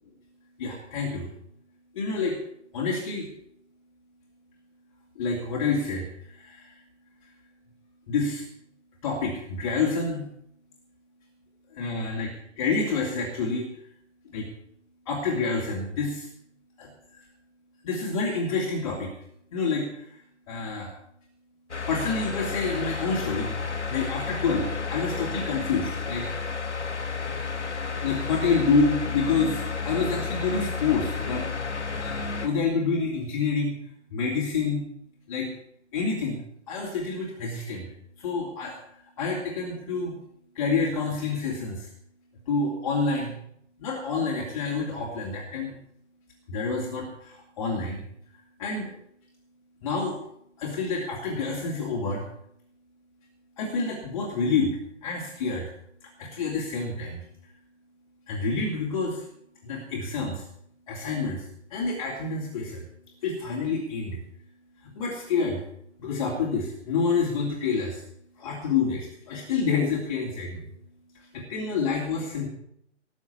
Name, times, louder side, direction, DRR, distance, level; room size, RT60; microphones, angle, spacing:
voice 1, 0.6-1.3 1.9-2.4 2.7-3.3 5.2-6.1 6.4-6.7 8.1-8.4 9.0-10.3 11.7-13.7 14.3-14.5 15.1-16.3 16.8-16.9 17.8-19.1 19.5-20.1 20.5-20.9 21.9-23.5 23.9-26.3 28.0-31.5 31.9-33.7 34.1-34.9 35.3-35.5 35.9-36.4 36.7-37.9 38.2-38.8 39.2-40.2 40.5-41.9 42.5-43.3 43.8-45.7 46.5-48.0 48.6-48.9 49.8-50.2 50.6-52.2 53.6-55.7 56.2-57.2 58.3-59.2 59.6-60.4 60.9-61.4 61.7-62.8 63.2-64.2 64.8-65.6 66.0-68.0 68.4-70.7 71.3-72.5, left 4 dB, 30° left, -4 dB, 3.0 m, -28 dB
sound 1, 21.7-32.5, left 5 dB, 65° left, 2.5 m, -31 dB
19.5 x 7.2 x 7.1 m, 0.73 s
figure-of-eight pair, 140°, 36 cm